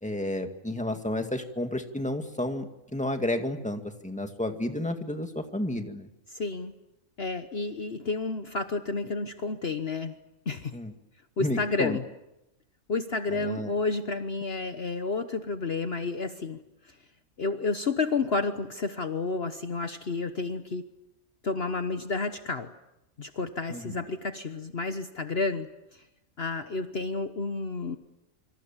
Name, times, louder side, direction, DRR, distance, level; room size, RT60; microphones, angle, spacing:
voice 1, 0.0-6.1 10.7-10.9 11.4-12.0 13.3-13.7 23.7-24.0, left 1 dB, 5° left, 5 dB, 2.0 m, -31 dB
voice 2, 6.3-6.7 7.2-10.2 10.5-10.8 11.4-12.0 12.9-16.6 17.4-20.9 21.4-22.7 23.2-25.7 26.4-28.0, left 3 dB, 50° left, 8 dB, 1.3 m, -30 dB
26.5 x 25.5 x 7.4 m, 0.91 s
omnidirectional pair, 1.4 m